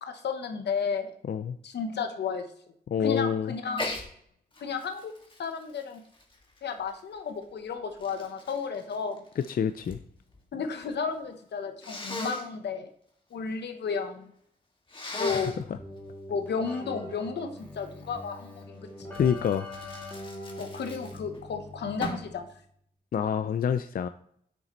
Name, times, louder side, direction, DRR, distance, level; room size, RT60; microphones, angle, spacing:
voice 1, 0.0-1.1 1.6-2.5 3.0-3.9 4.6-5.1 5.4-6.0 6.6-9.2 10.5-12.9 13.3-14.3 15.2-15.5 16.3-18.9 20.6-22.5, left 5 dB, 90° left, 7 dB, 0.9 m, -33 dB
voice 2, 2.9-3.5 9.4-10.0 15.2-15.4 19.1-19.7 23.1-24.1, left 7 dB, 60° left, 10 dB, 0.4 m, -27 dB
Sneeze, 3.7-4.1 4.5-6.9 7.6-10.0 10.3-10.9 11.8-12.4 14.9-15.6 19.1-21.4 22.0-22.3, left 1 dB, 30° left, 1.9 m, -38 dB
Keyboard (musical), 15.3-22.6, left 1 dB, 10° left, 2.3 m, -43 dB
9.3 x 6.9 x 3.0 m, 0.67 s
cardioid pair, 70°, 17 cm